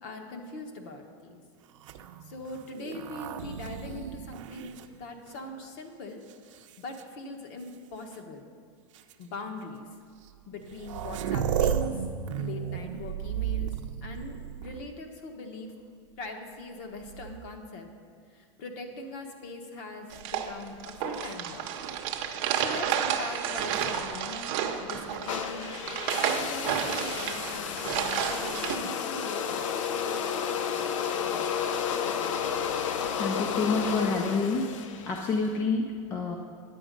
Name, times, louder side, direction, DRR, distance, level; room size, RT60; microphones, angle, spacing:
voice 1, 0.0-1.4 2.3-6.2 6.8-8.4 9.2-9.9 10.5-12.0 12.4-13.7 14.0-15.7 16.2-17.9 18.3-21.7 22.6-25.7 26.1-29.6, left 2 dB, 40° left, 4 dB, 1.1 m, -41 dB
sound 1, 1.8-5.6 6.3-7.0 8.1-8.2 8.9-9.1 10.3-10.4 10.5-15.0 16.9-17.6, right 8 dB, 80° right, 0.6 m, -34 dB
sound 2, 20.1-28.8, right 8 dB, 40° right, 0.8 m, -31 dB
sound 3, 25.3-35.5, left 7 dB, 85° left, 0.7 m, -32 dB
voice 2, 33.1-34.7 35.1-36.4, left 4 dB, 15° left, 2 dB, 0.4 m, -28 dB
9.8 x 8.1 x 5.2 m, 2.1 s
supercardioid pair, 175°, 16 cm